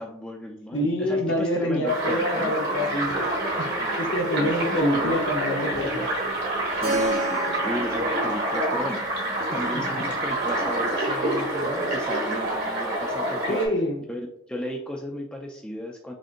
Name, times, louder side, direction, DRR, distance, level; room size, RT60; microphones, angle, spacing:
voice 1, 0.0-2.5 3.7-4.7 6.7-9.2 9.5-13.6 14.1-16.1, left 1 dB, 5° left, 1 dB, 0.4 m, -34 dB
voice 2, 0.7-3.3 3.6-6.1 9.7-10.1 13.5-14.0, left 1 dB, 60° left, 1 dB, 1.0 m, -26 dB
sound 1, 1.9-13.7, right 1 dB, 50° right, 1.6 m, -27 dB
Keyboard (musical), 6.8-11.4, right 1 dB, 70° right, 1.1 m, -33 dB
6.2 x 2.8 x 2.5 m, 0.72 s
head